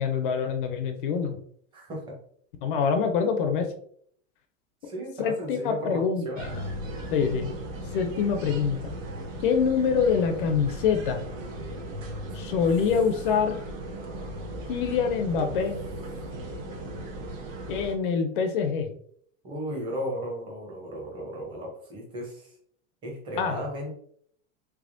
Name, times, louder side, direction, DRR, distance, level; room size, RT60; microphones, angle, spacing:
voice 1, 0.0-1.3 2.6-3.7 5.2-6.5 7.1-7.5 7.9-8.8 9.4-11.2 12.3-13.6 14.7-15.8 17.7-18.9 23.4-23.6, left 6 dB, 45° left, 6 dB, 0.4 m, -25 dB
voice 2, 1.7-2.2 4.8-6.6 15.2-15.6 19.4-22.5 23.0-23.9, equal, 15° right, -1 dB, 0.7 m, -35 dB
sound 1, 6.4-18.0, right 1 dB, 85° right, 1.0 m, -37 dB
3.4 x 3.3 x 2.5 m, 0.62 s
supercardioid pair, 165°, 38 cm